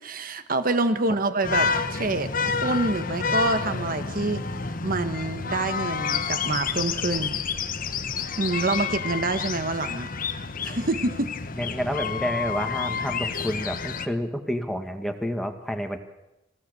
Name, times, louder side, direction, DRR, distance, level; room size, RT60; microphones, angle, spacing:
voice 1, 0.0-4.4 4.8-7.4 8.4-10.1 10.6-11.3, right 2 dB, 50° right, 10 dB, 1.3 m, -27 dB
sound 1, 1.4-14.1, left 5 dB, 45° left, 1.1 m, -29 dB
voice 2, 11.6-16.0, equal, ahead, 5 dB, 1.7 m, -29 dB
26.0 x 16.5 x 6.9 m, 0.97 s
head